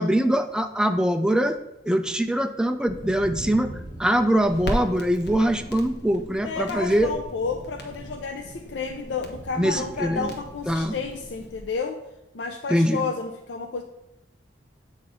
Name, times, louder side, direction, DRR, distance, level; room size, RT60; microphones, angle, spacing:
voice 1, 0.0-1.6 1.9-3.7 4.0-7.1 9.6-10.3 10.7-11.0 12.7-13.0, equal, 5° right, 8 dB, 0.3 m, -23 dB
sound 1, 2.9-11.5, right 1 dB, 20° left, 1.7 m, -42 dB
Crackle, 4.5-11.8, equal, 65° left, 0.9 m, -38 dB
voice 2, 6.4-12.0 12.3-13.8, left 5 dB, 85° left, 3 dB, 0.5 m, -31 dB
7.9 x 2.8 x 5.3 m, 0.89 s
head